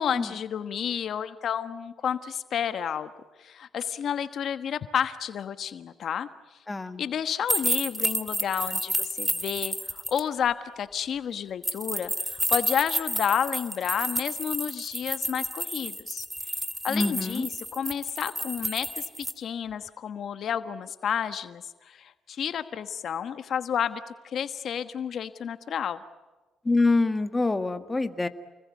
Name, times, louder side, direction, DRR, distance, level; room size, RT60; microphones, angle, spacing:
voice 1, 0.0-3.1 3.4-6.3 7.0-16.3 16.8-19.1 19.4-26.0, left 8 dB, 65° left, 11 dB, 1.2 m, -31 dB
voice 2, 6.7-7.0 16.9-17.5 26.6-28.3, left 3 dB, 20° left, 9 dB, 1.6 m, -25 dB
sound 1, 7.5-10.2 11.6-19.3, right 1 dB, 5° right, 2.2 m, -30 dB
29.5 x 21.5 x 9.5 m, 1.2 s
cardioid pair, 90°, 0 cm